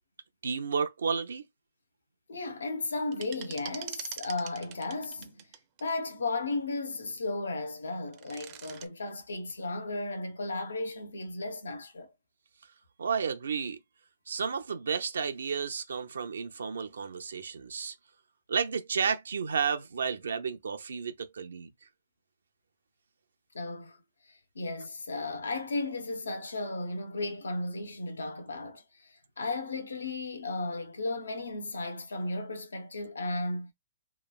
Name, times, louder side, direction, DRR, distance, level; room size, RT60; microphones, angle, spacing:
voice 1, 0.4-1.4 13.0-13.8 14.3-17.9 18.5-21.7, right 6 dB, 80° right, 0.5 m, -32 dB
voice 2, 2.3-5.5 5.8-12.1 23.5-24.0 24.3-33.7, left 2 dB, 90° left, 0.8 m, -35 dB
sound 1, 3.1-5.9 8.0-8.9, right 11 dB, 30° right, 0.5 m, -43 dB
3.0 x 2.4 x 2.3 m
hypercardioid pair, 145°, 0 cm